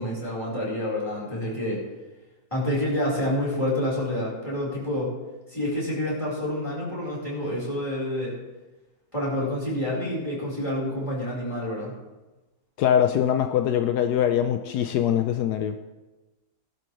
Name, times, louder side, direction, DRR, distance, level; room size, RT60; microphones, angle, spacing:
voice 1, 0.0-1.8 2.5-5.1 5.5-8.3 9.1-11.9, left 1 dB, 20° left, -5 dB, 4.5 m, -28 dB
voice 2, 12.8-15.8, left 9 dB, 80° left, 7 dB, 1.2 m, -23 dB
17.5 x 11.5 x 3.3 m, 1.1 s
omnidirectional pair, 1.7 m